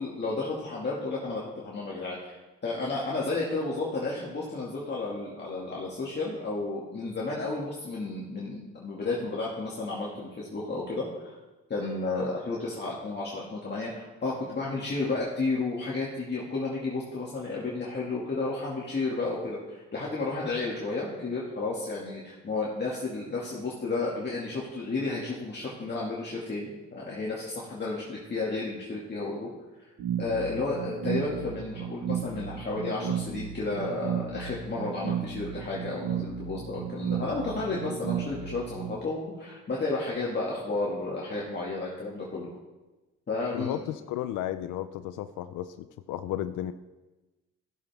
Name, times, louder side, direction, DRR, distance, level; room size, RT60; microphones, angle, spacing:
voice 1, 0.0-11.4 11.7-29.5 29.8-29.9 30.2-42.5 43.3-43.8, left 3 dB, 35° left, -5 dB, 2.1 m, -32 dB
sound 1, 30.0-39.0, right 8 dB, 65° right, 0.9 m, -34 dB
voice 2, 43.5-46.7, left 12 dB, 90° left, 11 dB, 0.5 m, -34 dB
15.0 x 7.1 x 3.5 m, 1.1 s
cardioid pair, 90°, 30 cm